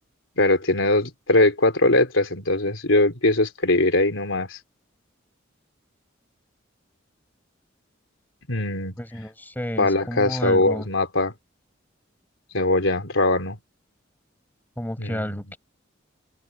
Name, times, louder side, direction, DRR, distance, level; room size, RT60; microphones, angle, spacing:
voice 1, 0.4-4.6 8.5-8.9 9.8-11.3 12.5-13.6 15.0-15.6, left 2 dB, 75° left, 3.7 m, -21 dB
voice 2, 9.0-10.9 14.8-15.6, equal, 10° left, 6.5 m, -31 dB
head